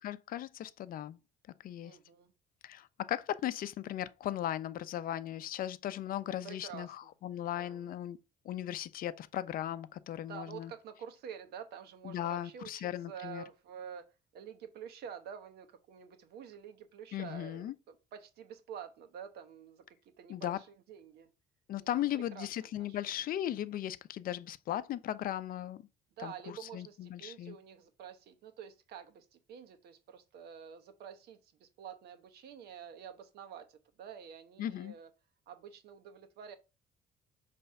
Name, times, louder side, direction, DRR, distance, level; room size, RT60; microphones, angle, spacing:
voice 1, 0.0-1.2 1.6-2.0 2.6-8.2 8.4-10.7 12.0-13.4 17.1-17.7 20.3-20.6 21.7-25.8 26.2-27.6 34.6-34.9, left 12 dB, 55° left, 0.5 m, -37 dB
voice 2, 1.8-2.3 6.3-7.1 7.5-7.9 10.3-21.3 21.8-23.0 26.2-35.1 35.5-36.6, right 8 dB, 70° right, 1.0 m, -48 dB
5.3 x 3.4 x 5.7 m
cardioid pair, 110°, 17 cm